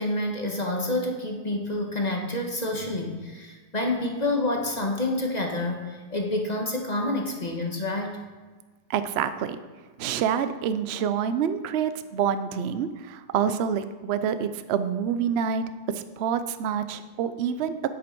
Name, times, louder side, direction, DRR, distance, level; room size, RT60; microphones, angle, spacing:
voice 1, 0.0-8.2, left 2 dB, 25° left, 1 dB, 1.3 m, -28 dB
voice 2, 8.9-9.6 10.0-17.8, right 8 dB, 80° right, 11 dB, 0.5 m, -27 dB
10.0 x 8.5 x 4.5 m, 1.4 s
omnidirectional pair, 1.9 m